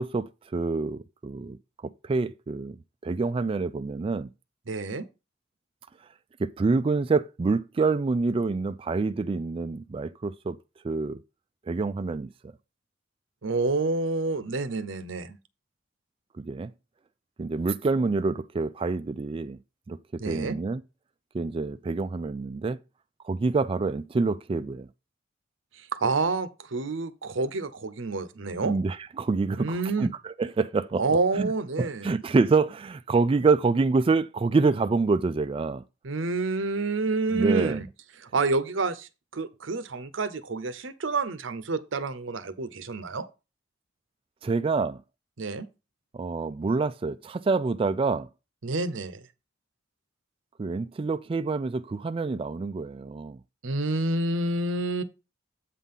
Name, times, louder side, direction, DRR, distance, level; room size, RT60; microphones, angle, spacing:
voice 1, 0.0-1.6 1.8-2.8 3.0-4.3 6.4-10.6 10.8-11.2 11.7-12.5 16.4-16.7 17.4-19.6 19.9-20.8 21.3-22.8 23.2-24.9 28.6-31.0 31.3-31.5 31.8-35.8 37.3-37.8 44.4-45.0 46.1-48.3 50.6-53.4, right 4 dB, 30° right, 0.3 m, -27 dB
voice 2, 4.7-5.1 13.4-15.4 20.2-20.6 26.0-28.7 29.6-30.1 31.0-32.1 36.0-37.9 38.2-43.2 45.4-45.7 48.6-49.2 53.6-55.0, right 3 dB, 85° right, 0.8 m, -28 dB
8.2 x 3.7 x 5.6 m
head